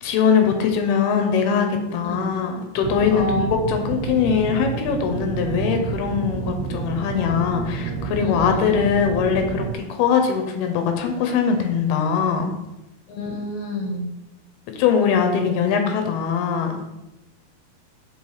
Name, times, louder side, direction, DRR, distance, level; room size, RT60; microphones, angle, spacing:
voice 1, 0.0-12.5 14.8-16.8, left 6 dB, 85° left, 5 dB, 2.7 m, -21 dB
sound 1, 2.8-9.8, right 6 dB, 90° right, 2.8 m, -29 dB
voice 2, 3.1-3.4 8.2-8.8 13.1-14.1, left 1 dB, 60° left, 1 dB, 1.9 m, -28 dB
5.5 x 4.8 x 4.6 m, 0.95 s
omnidirectional pair, 4.6 m